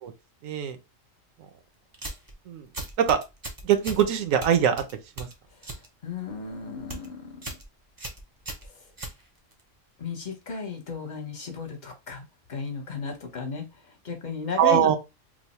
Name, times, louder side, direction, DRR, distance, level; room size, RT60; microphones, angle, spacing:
voice 1, 0.4-0.8 2.5-2.7 3.0-3.2 3.6-4.8 5.2-5.3 14.6-15.0, right 9 dB, 85° right, 1.0 m, -22 dB
sound 1, 1.9-2.3 2.7-4.0 4.4-5.9 6.2-6.5 6.8-7.1 7.4-7.7 8.0-9.6, right 1 dB, 25° right, 0.4 m, -38 dB
voice 2, 5.5-7.4 8.6-8.9 10.0-12.2 12.5-15.0, left 5 dB, 40° left, 0.9 m, -35 dB
3.0 x 2.1 x 4.1 m
omnidirectional pair, 1.4 m